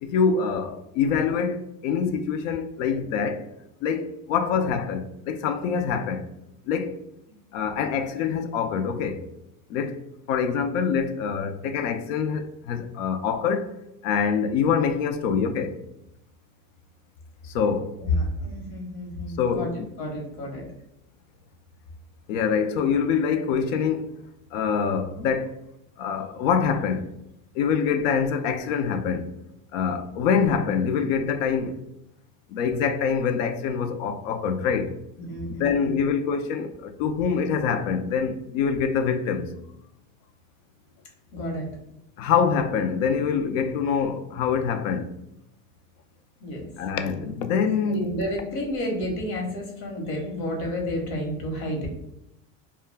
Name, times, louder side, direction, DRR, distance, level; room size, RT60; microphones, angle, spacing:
voice 1, 0.0-3.4 3.8-6.2 6.7-6.9 7.5-9.2 9.7-10.0 10.3-13.7 14.0-15.7 17.5-17.9 19.4-19.9 22.3-24.1 24.5-25.5 26.0-27.1 27.6-29.3 29.7-31.8 32.5-34.9 35.6-39.5 42.2-45.1 46.8-48.2, left 6 dB, 85° left, 0.5 m, -25 dB
voice 2, 18.0-19.7 20.0-20.6 35.2-36.0 41.3-41.7 46.4-46.7 47.9-51.9, left 1 dB, 60° left, 1.0 m, -30 dB
2.2 x 2.2 x 3.3 m
supercardioid pair, 150°, 38 cm